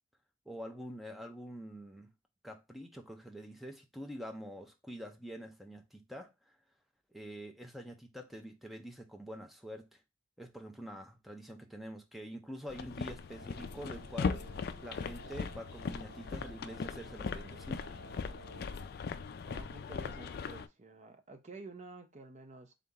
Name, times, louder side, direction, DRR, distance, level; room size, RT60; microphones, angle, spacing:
voice 1, 0.5-2.1 2.4-6.6 7.1-10.0 10.4-14.4 14.8-17.8, equal, ahead, 0.6 m, -46 dB
sound 1, 12.7-20.7, left 5 dB, 50° left, 0.3 m, -39 dB
sound 2, 13.3-18.9, right 2 dB, 85° right, 1.3 m, -54 dB
voice 2, 19.4-22.7, right 3 dB, 35° right, 0.7 m, -50 dB
3.9 x 2.9 x 3.6 m
head